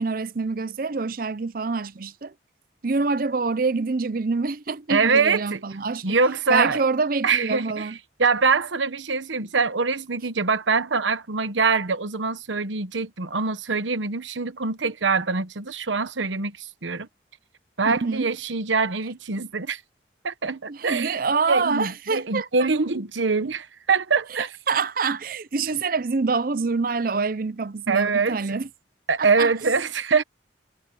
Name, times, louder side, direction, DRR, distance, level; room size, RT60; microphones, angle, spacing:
voice 1, 0.0-2.3 2.8-6.2 6.5-8.0 17.9-18.3 20.7-22.7 24.7-28.7 29.2-29.5, right 4 dB, 50° right, 0.6 m, -26 dB
voice 2, 4.9-5.6 6.0-6.8 7.2-7.9 8.2-17.1 17.8-19.8 20.2-21.2 21.5-24.5 27.9-28.4 29.1-30.2, right 4 dB, 85° right, 1.1 m, -24 dB
head